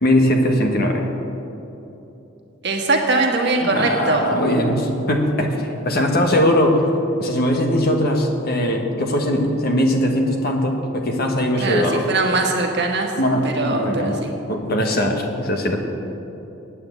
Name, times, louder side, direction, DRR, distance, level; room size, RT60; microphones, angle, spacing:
voice 1, 0.0-1.0 3.6-6.8 7.2-12.0 12.3-12.4 13.1-14.2 14.5-15.8, left 1 dB, 50° left, 3 dB, 1.3 m, -20 dB
voice 2, 2.6-4.3 11.6-13.1 13.4-14.3, right 3 dB, 55° right, 2 dB, 1.5 m, -21 dB
9.6 x 8.5 x 8.1 m, 2.9 s
head